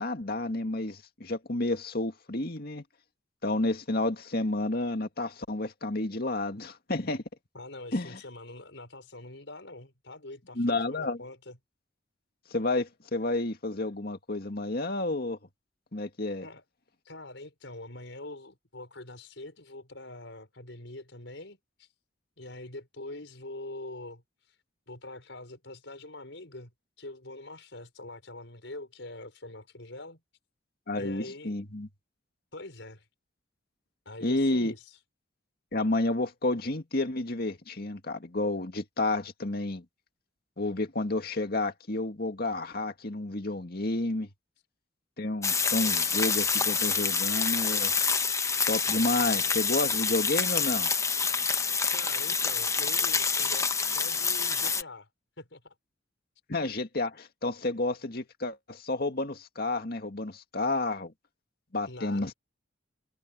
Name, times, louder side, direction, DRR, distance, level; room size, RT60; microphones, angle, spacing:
voice 1, 0.0-2.8 3.4-7.2 7.9-8.2 10.6-11.2 12.5-15.4 15.9-16.5 30.9-31.9 34.2-34.7 35.7-39.8 40.6-44.3 45.2-47.9 48.7-50.9 56.5-61.1 61.7-62.3, left 2 dB, 55° left, 2.1 m, -30 dB
voice 2, 7.5-11.6 16.4-16.6 17.1-21.9 22.4-24.2 24.9-26.7 27.0-30.2 31.0-31.5 32.5-33.1 34.1-35.0 51.9-55.1 55.4-55.7 61.9-62.3, left 2 dB, 75° left, 5.4 m, -44 dB
sound 1, 45.4-54.8, left 5 dB, 15° left, 0.8 m, -27 dB
head